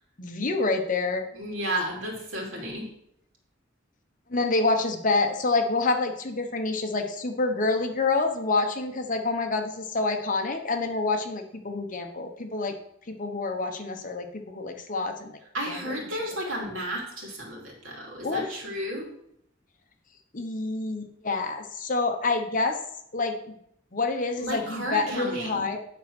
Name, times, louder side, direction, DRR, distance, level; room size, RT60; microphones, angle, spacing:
voice 1, 0.2-1.2 4.3-12.7 13.1-15.4 15.7-15.9 18.2-18.6 20.3-22.8 23.1-23.5 23.9-25.8, left 3 dB, 45° left, 5 dB, 1.0 m, -27 dB
voice 2, 1.3-2.9 15.5-19.1 24.4-25.7, right 1 dB, 90° right, -1 dB, 2.7 m, -33 dB
9.2 x 4.3 x 6.1 m, 0.73 s
head